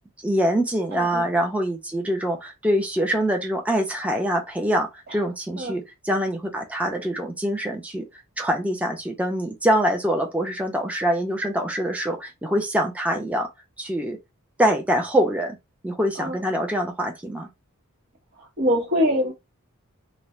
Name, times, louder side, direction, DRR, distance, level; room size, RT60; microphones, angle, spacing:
voice 1, 0.2-8.1 8.4-13.5 13.8-14.2 14.6-15.6 15.8-17.5, equal, 5° right, 0.5 m, -24 dB
voice 2, 0.9-1.2 5.1-5.2 5.6-5.8 16.2-16.4 18.4-19.3, equal, 50° right, 1.0 m, -24 dB
2.5 x 2.0 x 3.1 m
head